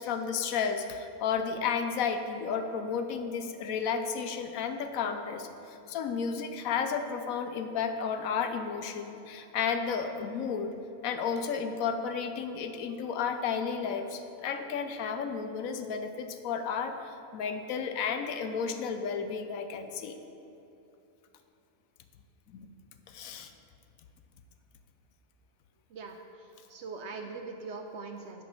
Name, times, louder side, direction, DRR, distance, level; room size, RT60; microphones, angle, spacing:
voice 1, 0.0-10.8 11.0-20.2 22.5-22.7 23.1-23.5, left 6 dB, 80° left, 8 dB, 1.0 m, -32 dB
voice 2, 25.9-28.4, right 4 dB, 65° right, 4 dB, 0.8 m, -42 dB
8.7 x 5.1 x 5.4 m, 2.9 s
omnidirectional pair, 1.4 m